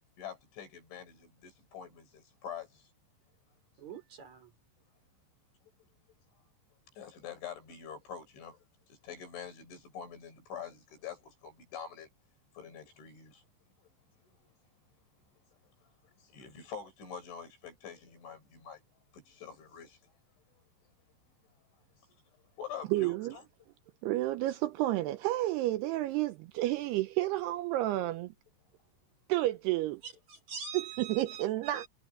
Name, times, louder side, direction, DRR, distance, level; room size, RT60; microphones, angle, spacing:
voice 1, 0.2-2.9 5.8-5.9 7.0-8.6 8.9-12.1 12.6-13.4 14.4-14.5 16.0-18.8 19.1-20.1 22.6-23.5, left 7 dB, 85° left, 8.7 m, -45 dB
voice 2, 3.8-4.5 30.0-31.4 31.7-31.9, right 6 dB, 40° right, 5.3 m, -44 dB
voice 3, 22.9-23.3 24.0-28.3 29.3-30.0 30.7-31.9, right 16 dB, 85° right, 2.5 m, -30 dB
omnidirectional pair, 5.3 m